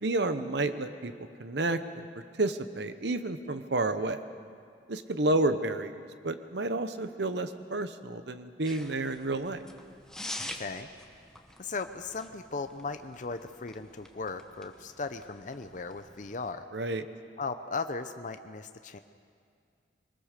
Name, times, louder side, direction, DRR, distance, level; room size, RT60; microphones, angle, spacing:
voice 1, 0.0-1.1 1.4-2.1 2.4-4.2 4.9-5.9 6.2-9.6 16.7-17.0, right 2 dB, 65° right, 10 dB, 1.0 m, -30 dB
sound 1, 8.6-16.5, left 1 dB, 5° left, 1.1 m, -46 dB
voice 2, 10.4-10.9 11.6-16.6 17.4-19.0, left 4 dB, 45° left, 8 dB, 0.7 m, -37 dB
22.0 x 20.0 x 6.7 m, 2.3 s
head